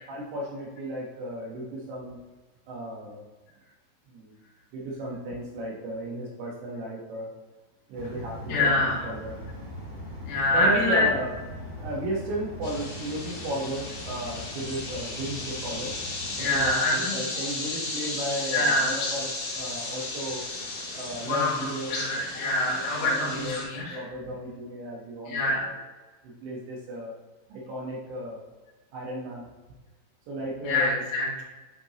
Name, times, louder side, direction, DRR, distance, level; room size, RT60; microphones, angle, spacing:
voice 1, 0.1-2.2 2.7-3.2 4.1-4.4 4.7-7.3 7.9-9.3 10.5-11.3 11.8-15.9 16.4-20.4 20.9-21.9 22.7-23.6 23.9-25.7 26.2-27.1 27.5-28.4 28.9-29.4 30.3-31.0, right 1 dB, 70° right, -4 dB, 3.4 m, -34 dB
sound 1, 7.9-16.7, left 1 dB, 35° right, 1.5 m, -41 dB
voice 2, 8.5-9.0 10.3-11.0 16.4-17.2 18.5-18.9 21.2-21.5 21.9-24.0 25.3-25.7 30.7-31.4, left 2 dB, 80° left, -5 dB, 4.6 m, -25 dB
sound 2, 12.6-23.6, left 2 dB, 60° left, 2.2 m, -35 dB
11.0 x 4.4 x 3.0 m, 1.2 s
omnidirectional pair, 5.6 m